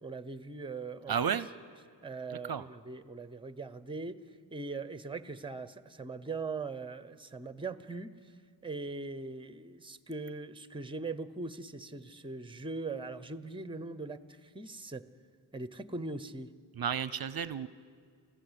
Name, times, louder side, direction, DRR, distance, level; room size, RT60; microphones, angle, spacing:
voice 1, 0.0-1.4 2.0-4.2 4.5-8.1 8.6-15.1 15.5-16.5, right 3 dB, 10° right, 14 dB, 0.8 m, -40 dB
voice 2, 1.1-1.5 2.3-2.6 16.7-17.7, right 8 dB, 55° right, 16 dB, 0.6 m, -32 dB
23.5 x 15.0 x 8.1 m, 2.2 s
wide cardioid pair, 75°, 44 cm